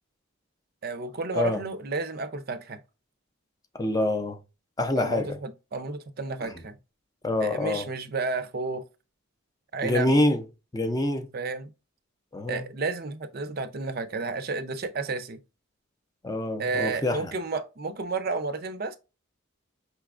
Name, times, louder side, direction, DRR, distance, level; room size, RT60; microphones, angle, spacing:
voice 1, 0.8-2.8 5.0-6.8 7.4-8.8 9.7-10.2 11.3-11.7 12.5-15.4 16.6-19.0, right 3 dB, 45° right, 0.5 m, -31 dB
voice 2, 3.7-4.4 4.8-5.3 6.4-6.5 7.2-7.9 9.8-10.4 10.7-11.3 12.3-12.6 16.2-17.3, left 1 dB, 15° left, 0.5 m, -26 dB
5.5 x 3.4 x 2.4 m
head